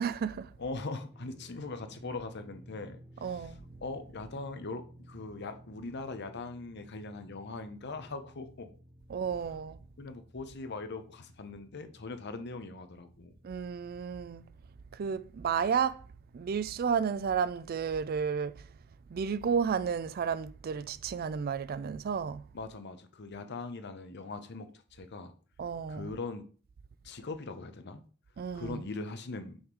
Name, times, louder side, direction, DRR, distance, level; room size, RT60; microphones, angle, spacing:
voice 1, 0.0-0.5 3.2-3.6 9.1-9.8 13.4-14.5 14.9-16.0 16.3-18.6 19.1-22.5 25.6-26.1 28.4-28.8, right 6 dB, 50° right, 0.4 m, -32 dB
voice 2, 0.6-3.5 3.8-8.7 10.0-13.3 22.5-25.3 25.9-26.5 27.0-28.0 28.5-29.6, left 3 dB, 55° left, 0.8 m, -41 dB
sound 1, 1.1-18.8, right 1 dB, ahead, 1.5 m, -56 dB
6.3 x 3.7 x 4.7 m
head